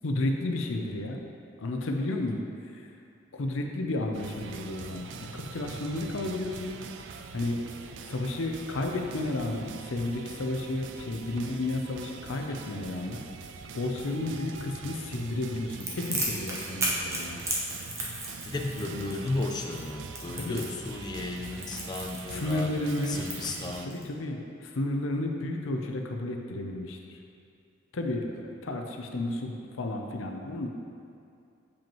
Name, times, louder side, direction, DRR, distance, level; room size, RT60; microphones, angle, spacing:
voice 1, 0.0-1.2 1.6-2.4 2.7-2.9 3.3-5.1 5.3-6.7 7.3-7.6 8.1-13.2 13.7-17.4 18.8-19.4 20.3-20.7 22.3-23.2 23.9-27.0 27.9-30.7, left 2 dB, 90° left, 3 dB, 0.6 m, -32 dB
sound 1, 4.1-23.9, right 5 dB, 65° right, 0.3 m, -43 dB
Crackle, 15.8-24.0, right 1 dB, 15° right, 0.8 m, -35 dB
voice 2, 18.4-22.7 23.1-23.9, left 2 dB, 20° left, 2 dB, 0.3 m, -34 dB
7.1 x 5.1 x 3.0 m, 2.5 s
head